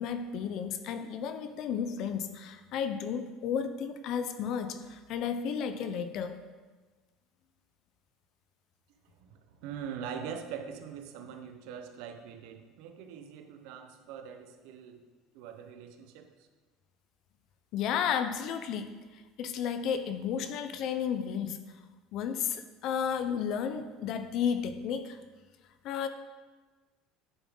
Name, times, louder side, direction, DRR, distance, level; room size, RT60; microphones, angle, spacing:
voice 1, 0.0-6.4 17.7-18.9 19.4-21.6 22.1-25.2 25.8-26.1, left 7 dB, 55° left, 10 dB, 0.7 m, -33 dB
voice 2, 9.1-15.0 15.3-16.5, right 7 dB, 75° right, 7 dB, 0.9 m, -43 dB
10.0 x 7.2 x 3.9 m, 1.3 s
cardioid pair, 140°, 0 cm